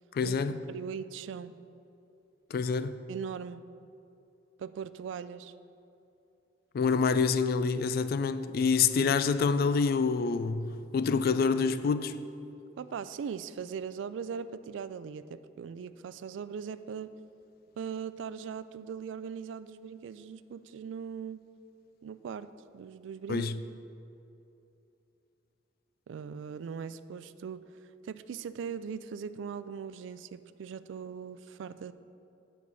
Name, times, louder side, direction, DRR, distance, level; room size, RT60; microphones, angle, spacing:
voice 1, 0.1-0.6 2.5-3.0 6.7-12.1 23.3-23.6, left 5 dB, 55° left, 0.3 m, -27 dB
voice 2, 0.7-1.5 3.1-3.6 4.6-5.5 12.8-17.1 17.8-21.4 22.0-22.5 22.7-23.7 26.1-27.7 28.0-31.9, right 7 dB, 75° right, 0.3 m, -40 dB
8.4 x 4.7 x 5.5 m
head